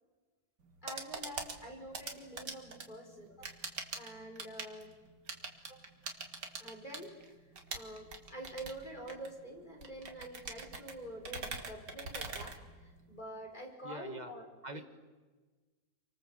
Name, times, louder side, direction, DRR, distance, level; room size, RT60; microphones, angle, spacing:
sound 1, 0.6-13.2, right 4 dB, 70° right, 2.8 m, -45 dB
voice 1, 0.8-4.9 6.6-7.1 7.7-12.6 12.8-14.5 14.7-14.8, right 1 dB, 25° left, 1 dB, 5.3 m, -47 dB
voice 2, 13.8-14.3 14.6-14.8, right 1 dB, 25° right, 7 dB, 1.8 m, -44 dB
29.5 x 24.5 x 7.9 m, 1.3 s
omnidirectional pair, 1.9 m